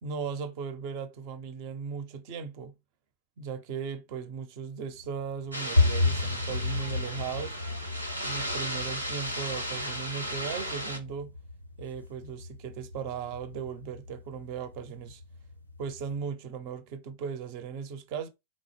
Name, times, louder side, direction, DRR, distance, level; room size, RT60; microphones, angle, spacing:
voice 1, 0.0-2.7 3.4-7.6 8.2-11.3 11.8-15.2 15.8-18.3, right 6 dB, 45° right, 0.6 m, -37 dB
sound 1, 4.9-16.2, left 3 dB, 90° left, 0.5 m, -33 dB
sound 2, 5.5-11.0, equal, 85° right, 0.7 m, -35 dB
3.6 x 2.0 x 3.3 m
figure-of-eight pair, 90°, 0 cm